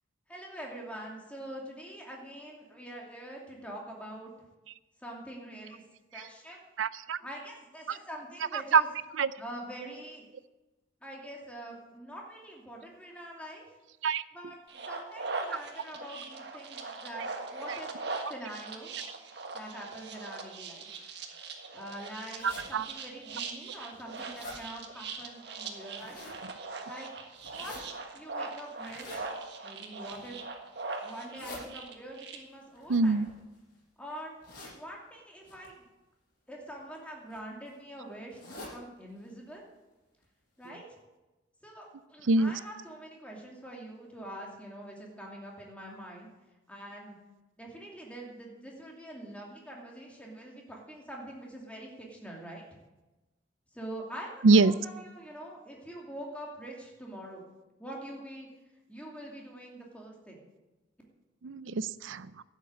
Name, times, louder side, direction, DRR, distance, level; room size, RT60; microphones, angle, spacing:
voice 1, 0.3-4.3 5.0-5.8 6.1-6.6 7.2-8.9 9.4-10.2 11.0-13.6 14.3-17.3 17.5-17.9 18.3-18.9 19.5-20.9 21.7-26.2 26.8-27.1 27.5-29.3 29.6-30.4 31.0-33.2 34.0-34.3 34.7-35.8 36.5-39.7 40.6-40.8 41.6-46.3 46.7-47.2 47.6-52.8 53.7-57.4 57.8-58.5 58.9-60.4, right 1 dB, 5° left, -1 dB, 2.6 m, -44 dB
voice 2, 6.8-7.2 7.9-8.0 8.5-8.8 9.2-9.3 14.0-14.2 22.4-22.9 32.9-33.3 42.3-42.6 54.4-54.7 61.4-62.3, right 4 dB, 80° right, 17 dB, 0.5 m, -24 dB
sound 1, 14.7-32.4, right 4 dB, 60° right, 1.6 m, -41 dB
sound 2, 22.4-22.6 23.3-23.4 23.8-24.6 25.7-26.4 27.3-27.8 28.8-29.2 30.0-30.4 31.1-31.6 32.7-33.7 34.4-34.8 35.4-35.7 36.7-37.0 37.3-37.4 37.6-37.7 38.3-38.7 39.2-39.3 39.5-39.6 40.2-40.3 40.6-40.7, left 1 dB, 50° left, 6.0 m, -46 dB
12.0 x 8.2 x 8.8 m, 1.1 s
head